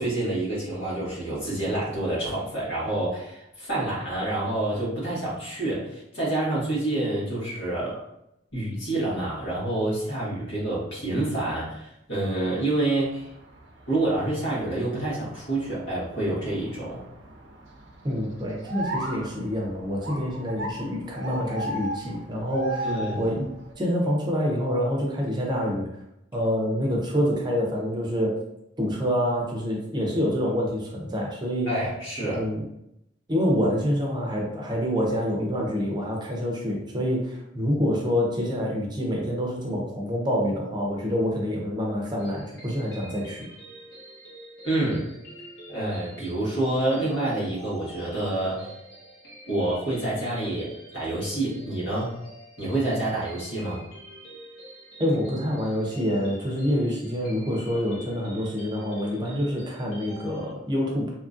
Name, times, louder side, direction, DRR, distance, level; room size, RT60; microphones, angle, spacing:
voice 1, 0.0-8.0 8.5-13.3 13.9-17.0 22.8-23.2 31.7-32.4 44.6-45.1 45.7-48.7 49.5-52.2 52.6-53.8, right 2 dB, 80° left, -7 dB, 1.4 m, -28 dB
sound 1, 12.9-23.7, right 1 dB, 75° right, 0.5 m, -38 dB
voice 2, 18.0-22.9 23.2-23.5 23.8-25.9 26.3-28.4 28.8-31.7 32.2-32.6 33.3-43.5 55.0-61.1, equal, 25° right, -1 dB, 0.5 m, -26 dB
sound 2, 42.2-60.5, equal, 60° left, 1.0 m, -46 dB
2.8 x 2.5 x 2.4 m, 0.83 s
head